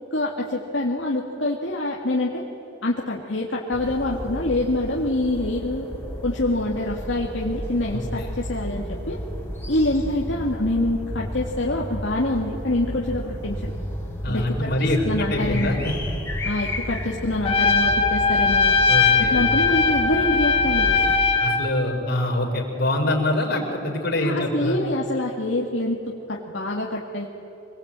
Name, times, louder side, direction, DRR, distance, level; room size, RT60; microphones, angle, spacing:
voice 1, 0.1-2.4 2.8-5.9 6.2-9.2 9.7-13.7 14.3-15.8 16.4-18.8 19.2-21.1 24.2-27.2, left 1 dB, 75° left, -2 dB, 2.3 m, -26 dB
sound 1, 3.7-21.2, equal, 10° left, 4.2 m, -32 dB
voice 2, 14.2-16.0 18.9-19.7 21.4-24.8, left 1 dB, 55° left, 0 dB, 5.1 m, -24 dB
Trumpet, 17.4-21.7, left 4 dB, 30° left, 2.1 m, -20 dB
26.5 x 20.0 x 9.0 m, 2.9 s
head